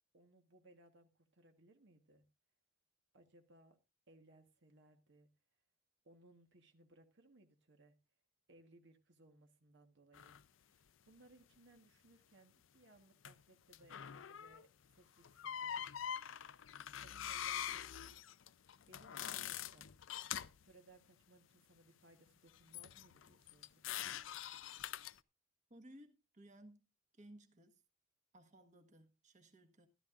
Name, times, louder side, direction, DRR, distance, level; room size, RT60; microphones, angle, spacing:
voice 1, 0.1-2.2 3.1-3.8 4.1-5.3 6.0-8.0 8.5-15.7 17.0-18.0 18.9-19.9 20.6-23.9, right 2 dB, 65° right, 1.4 m, -65 dB
sound 1, 10.1-10.4 13.3-13.4 13.7-14.7 15.2-20.6 22.7-25.2, left 10 dB, 70° left, 0.5 m, -44 dB
voice 2, 25.7-26.9 27.2-27.8 28.3-29.9, right 1 dB, 40° right, 1.4 m, -60 dB
14.0 x 12.5 x 2.5 m
head